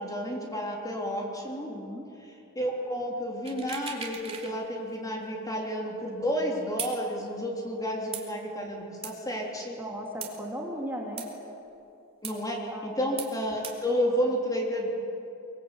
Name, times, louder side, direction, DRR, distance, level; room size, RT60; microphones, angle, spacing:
voice 1, 0.0-1.7 2.2-9.8 12.2-14.9, equal, 15° left, -1 dB, 3.4 m, -31 dB
voice 2, 1.7-2.1 9.8-11.2 12.7-13.1, equal, 10° right, -1 dB, 3.5 m, -37 dB
sound 1, 3.5-4.5 4.9-5.0 6.8-7.0 8.1-8.3 9.0-9.1 10.2-10.3 11.2-11.3 12.2-12.4 13.2-13.3 13.6-13.8, right 6 dB, 25° right, 3.0 m, -37 dB
23.5 x 22.5 x 8.4 m, 2.7 s
head